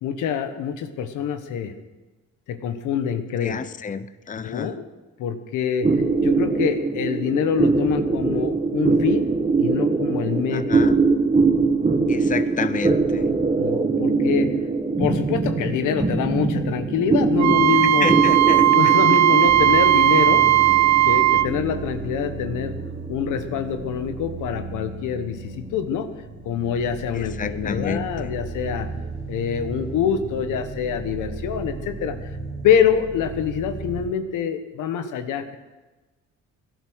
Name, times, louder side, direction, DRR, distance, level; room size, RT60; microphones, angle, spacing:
voice 1, 0.0-1.7 2.5-3.6 4.4-4.8 5.2-5.9 6.2-9.3 9.6-10.9 13.6-14.5 15.0-18.1 18.7-20.4 21.1-22.8 23.1-26.1 26.4-28.9 29.3-32.1 32.6-35.6, left 7 dB, 90° left, 9 dB, 1.3 m, -25 dB
voice 2, 3.4-4.7 10.5-11.0 12.1-13.3 17.8-18.6 27.1-28.3, left 6 dB, 25° left, 12 dB, 0.7 m, -30 dB
sound 1, 5.8-24.6, right 4 dB, 20° right, 1.5 m, -23 dB
Wind instrument woodwind instrument, 17.4-21.5, right 14 dB, 65° right, 0.6 m, -17 dB
sound 2, 19.5-34.1, right 3 dB, 80° right, 3.6 m, -35 dB
17.0 x 11.0 x 6.4 m, 1.2 s
cardioid pair, 90°, 30 cm